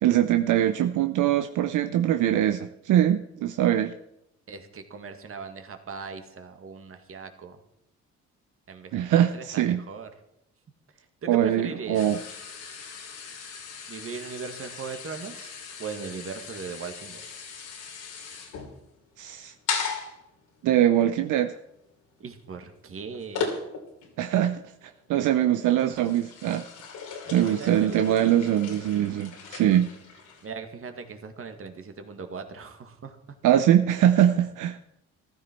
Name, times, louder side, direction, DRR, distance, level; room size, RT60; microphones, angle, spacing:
voice 1, 0.0-3.9 8.9-9.8 11.3-12.2 19.2-19.5 20.6-21.6 24.2-26.6 27.3-29.9 33.4-34.8, right 11 dB, 80° right, 8 dB, 0.7 m, -22 dB
voice 2, 4.5-7.6 8.7-10.1 11.2-12.1 13.9-15.5 15.8-17.2 22.2-23.5 27.3-28.4 30.4-33.2, right 5 dB, 45° right, 6 dB, 1.9 m, -39 dB
sound 1, 11.9-24.2 24.5-24.9 25.4-30.5, left 5 dB, 85° left, 2.9 m, -38 dB
14.0 x 13.0 x 4.5 m, 0.83 s
cardioid pair, 90°, 30 cm